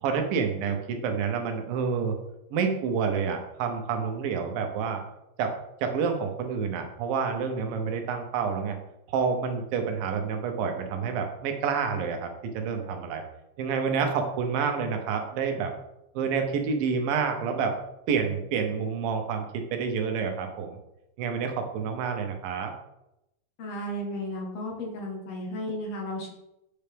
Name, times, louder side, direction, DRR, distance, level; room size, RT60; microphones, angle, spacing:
voice 1, 0.0-2.2 2.5-5.0 5.4-5.5 5.8-8.8 9.1-12.3 12.5-13.2 13.6-15.7 16.1-17.7 18.1-20.8 21.2-22.7, right 6 dB, 90° right, 5 dB, 2.7 m, -28 dB
voice 2, 23.6-26.3, equal, 55° left, 0 dB, 2.1 m, -34 dB
8.9 x 5.6 x 3.5 m, 0.86 s
omnidirectional pair, 4.0 m